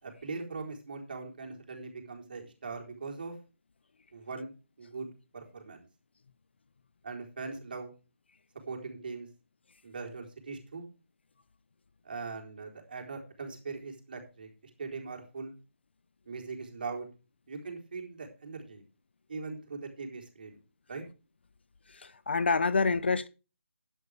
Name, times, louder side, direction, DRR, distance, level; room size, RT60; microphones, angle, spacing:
voice 1, 0.0-3.4 4.1-5.1 5.3-5.8 7.0-7.9 8.7-9.3 9.8-10.9 12.0-14.5 14.8-15.6 16.3-17.1 17.5-18.8 19.3-20.6 20.9-21.0, right 4 dB, 40° right, 4.0 m, -41 dB
voice 2, 21.9-23.3, left 4 dB, 50° left, 0.7 m, -27 dB
12.5 x 11.0 x 3.5 m
figure-of-eight pair, 170°, 7 cm